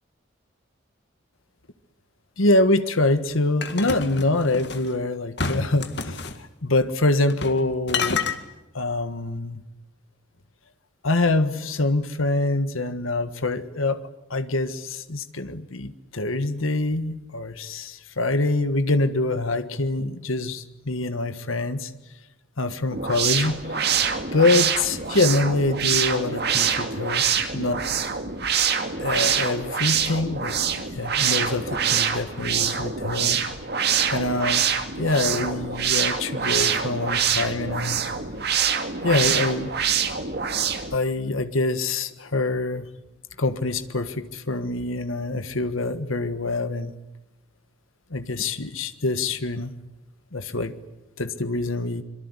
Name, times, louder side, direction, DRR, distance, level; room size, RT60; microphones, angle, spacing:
voice 1, 2.4-6.2 6.6-8.2 8.7-9.6 11.0-21.9 22.6-23.8 24.3-27.3 27.5-27.8 29.0-33.4 34.1-34.7 35.0-38.0 39.0-39.7 40.9-42.9 43.4-46.9 48.1-49.7 50.3-50.7 51.2-52.0, left 2 dB, 85° left, 10 dB, 1.6 m, -25 dB
sound 1, 3.6-4.9 5.4-6.4 7.3-7.6 7.9-8.4, left 5 dB, 55° left, 2.1 m, -28 dB
sound 2, 22.9-41.0, right 7 dB, 50° right, 2.4 m, -25 dB
25.5 x 23.5 x 9.8 m, 0.96 s
head